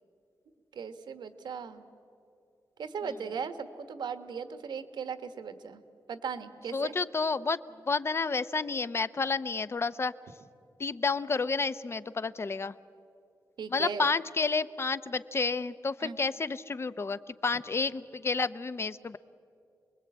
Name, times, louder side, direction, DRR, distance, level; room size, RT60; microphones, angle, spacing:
voice 1, 0.7-1.9 2.8-5.8 6.1-6.9 13.6-14.1 16.0-16.2, right 6 dB, 85° right, 10 dB, 1.4 m, -38 dB
voice 2, 6.7-10.1 10.8-12.7 13.7-19.2, left 4 dB, 35° left, 14 dB, 0.7 m, -30 dB
28.0 x 21.0 x 8.6 m, 2.6 s
wide cardioid pair, 100°, 7 cm